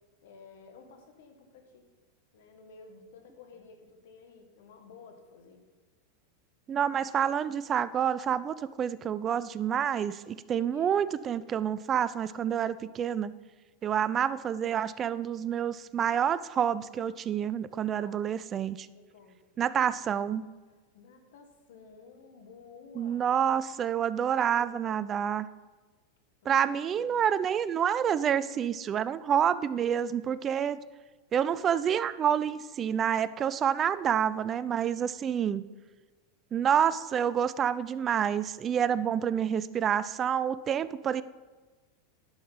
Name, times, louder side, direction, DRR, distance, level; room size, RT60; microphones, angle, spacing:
voice 1, 0.2-1.8 2.3-5.6 10.5-11.0 17.7-18.3 18.9-19.4 20.9-23.3 24.6-25.1 26.4-27.3, left 4 dB, 65° left, 5 dB, 1.6 m, -53 dB
voice 2, 6.7-13.3 13.8-18.9 19.6-20.5 23.0-25.5 26.5-30.8 31.3-35.6 36.5-41.2, right 8 dB, 30° right, 16 dB, 0.4 m, -28 dB
10.5 x 6.5 x 5.6 m, 1.3 s
hypercardioid pair, 95°, 0 cm